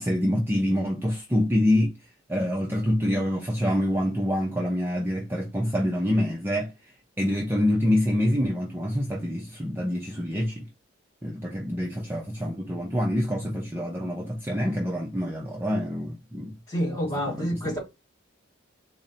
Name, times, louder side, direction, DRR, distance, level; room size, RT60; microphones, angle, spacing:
voice 1, 0.0-1.9 2.3-6.9 7.2-10.7 11.2-16.5 17.3-17.8, left 1 dB, 10° right, 0.5 m, -26 dB
voice 2, 16.7-17.8, equal, 20° left, 2.2 m, -28 dB
4.0 x 2.1 x 3.9 m
head